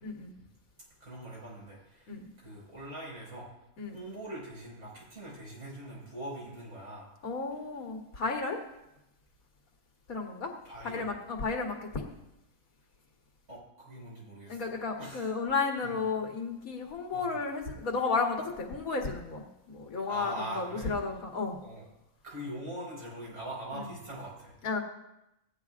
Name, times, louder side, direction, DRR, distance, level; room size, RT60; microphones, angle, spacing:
voice 1, 0.0-0.3 2.1-2.3 3.8-4.0 7.2-8.6 10.1-10.5 10.8-12.1 14.5-21.6 23.7-23.9 24.6-24.8, left 4 dB, 80° left, 2 dB, 1.8 m, -33 dB
voice 2, 1.0-3.5 3.9-7.1 10.6-11.1 13.5-14.6 15.0-15.3 15.8-15.9 17.1-17.3 20.1-20.9 21.6-21.8 22.2-24.5, right 1 dB, 80° right, -6 dB, 5.4 m, -42 dB
16.5 x 9.5 x 2.4 m, 0.87 s
omnidirectional pair, 1.5 m